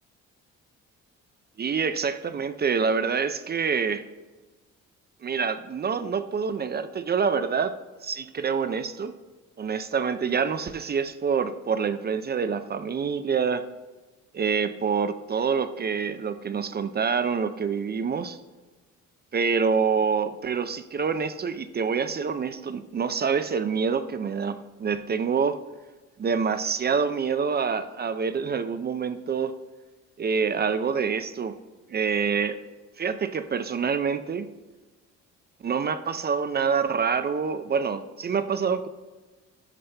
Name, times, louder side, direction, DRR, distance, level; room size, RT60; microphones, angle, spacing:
voice 1, 1.6-4.0 5.2-7.8 8.0-9.1 9.6-13.7 14.3-18.4 19.3-25.6 26.2-29.5 30.2-31.6 31.9-32.6 33.0-34.5 35.6-38.9, right 6 dB, 35° right, 11 dB, 0.5 m, -26 dB
11.0 x 5.5 x 3.3 m, 1.2 s
cardioid pair, 90°, 30 cm